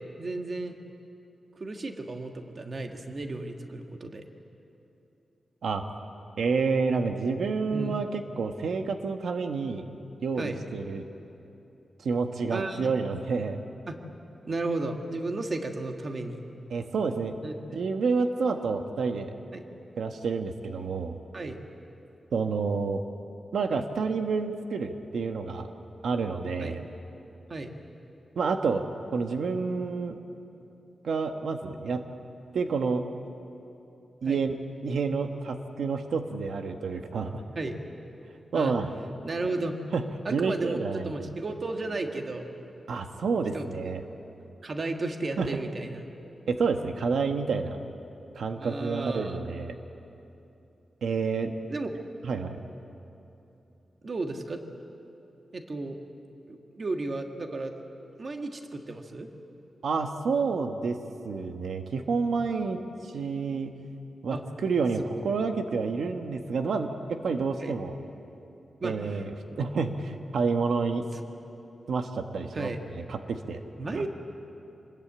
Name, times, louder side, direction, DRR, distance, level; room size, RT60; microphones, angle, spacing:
voice 1, 0.2-0.8 1.6-4.2 7.7-7.9 10.4-10.6 12.5-12.9 13.9-14.0 14.5-16.4 17.4-17.9 19.5-19.7 21.3-21.6 26.6-26.8 27.5-27.7 34.3-34.4 37.5-37.9 38.5-38.7 39.2-39.8 40.2-42.5 43.5-43.9 44.6-46.1 48.6-49.5 51.7-51.9 54.0-54.6 55.5-56.0 56.5-57.7 58.2-59.3 64.3-64.4 65.0-65.1 67.6-67.7 68.8-69.2 72.5-72.8 73.8-74.1, right 2 dB, 35° right, 4 dB, 1.6 m, -34 dB
voice 2, 6.4-9.8 10.2-11.0 12.0-13.6 16.7-17.4 17.7-19.3 20.0-21.2 22.3-23.0 23.5-25.7 26.0-26.8 28.4-28.8 29.1-30.2 31.0-32.0 32.5-33.0 34.2-37.4 38.5-38.9 39.9-40.0 40.3-41.3 42.9-44.0 45.4-45.6 46.5-47.8 48.3-49.7 51.0-51.6 52.2-52.6 59.8-61.0 61.2-63.7 64.2-68.0 68.8-71.0 71.9-72.7 73.1-73.6 73.9-74.0, right 4 dB, 90° right, 6 dB, 1.3 m, -29 dB
26.5 x 21.0 x 8.7 m, 2.9 s
wide cardioid pair, 175°, 0 cm